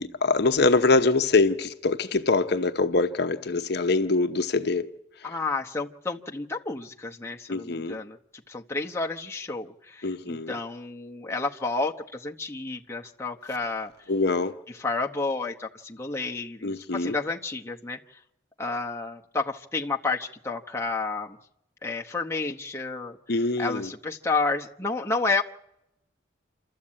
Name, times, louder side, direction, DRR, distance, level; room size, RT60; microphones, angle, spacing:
voice 1, 0.0-4.9 7.5-8.0 10.0-10.5 14.1-14.5 16.6-17.1 23.3-23.9, left 3 dB, 55° left, 0.9 m, -24 dB
voice 2, 5.2-8.2 8.5-13.9 14.7-18.0 18.6-21.4 21.8-25.4, left 3 dB, 15° left, 1.0 m, -31 dB
27.0 x 13.5 x 8.7 m
head